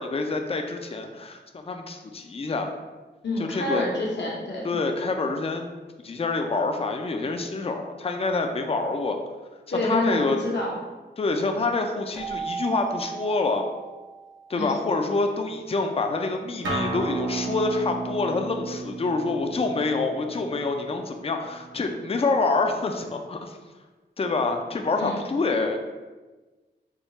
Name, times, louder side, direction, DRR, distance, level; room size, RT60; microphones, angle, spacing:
voice 1, 0.0-2.7 3.4-3.8 4.6-5.7 6.0-9.2 9.8-10.4 11.2-13.6 14.5-23.6 24.2-25.8, left 3 dB, 30° left, 4 dB, 0.4 m, -26 dB
voice 2, 3.2-4.7 9.7-10.7 14.5-14.8 25.0-25.2, left 1 dB, 65° left, -4 dB, 0.8 m, -27 dB
Keyboard (musical), 12.1-14.8, right 6 dB, 5° right, 0.6 m, -36 dB
Acoustic guitar, 16.6-21.8, right 2 dB, 80° right, 0.8 m, -33 dB
3.6 x 2.3 x 4.0 m, 1.2 s
cardioid pair, 55°, 19 cm